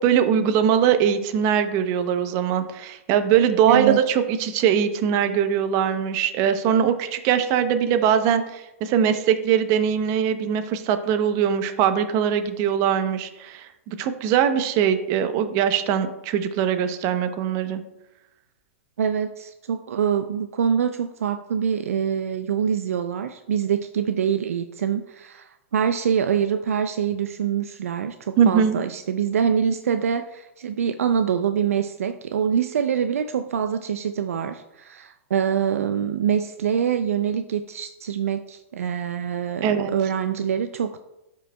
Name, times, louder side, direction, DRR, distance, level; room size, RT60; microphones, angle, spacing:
voice 1, 0.0-17.8 28.4-28.8 39.6-39.9, right 8 dB, 40° right, 10 dB, 0.7 m, -21 dB
voice 2, 3.7-4.0 19.0-41.0, right 8 dB, 75° right, 9 dB, 0.4 m, -25 dB
13.0 x 5.2 x 2.2 m, 0.93 s
hypercardioid pair, 115°, 8 cm